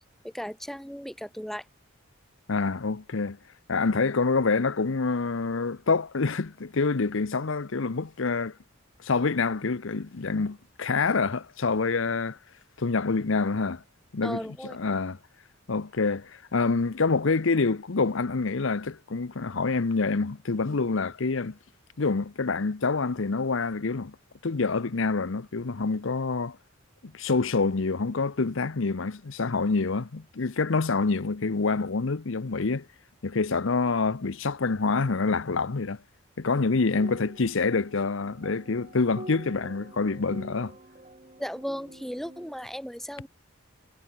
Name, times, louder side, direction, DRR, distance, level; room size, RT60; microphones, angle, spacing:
voice 1, 0.2-1.6 14.2-14.8 41.4-43.3, equal, ahead, 6.5 m, -36 dB
voice 2, 2.5-3.4 3.7-8.6 9.0-12.4 12.8-13.8 14.1-15.2 15.7-21.6 22.0-24.2 24.4-26.6 27.1-32.9 33.2-36.0 36.4-40.8, left 4 dB, 65° left, 0.7 m, -26 dB
sound 1, 36.8-42.7, right 1 dB, 30° right, 5.5 m, -46 dB
head